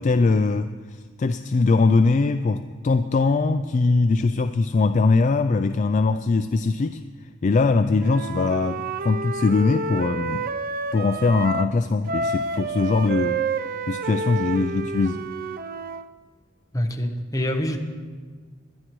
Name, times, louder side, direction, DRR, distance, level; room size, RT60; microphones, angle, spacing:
voice 1, 0.0-7.0 7.4-10.4 10.9-13.4 13.9-15.3, left 3 dB, 35° left, 10 dB, 0.3 m, -21 dB
Wind instrument woodwind instrument, 8.0-11.7 12.1-16.1, right 3 dB, 45° right, 0.4 m, -29 dB
voice 2, 16.7-17.8, equal, 15° left, 4 dB, 1.0 m, -25 dB
21.0 x 11.5 x 3.1 m, 1.6 s
head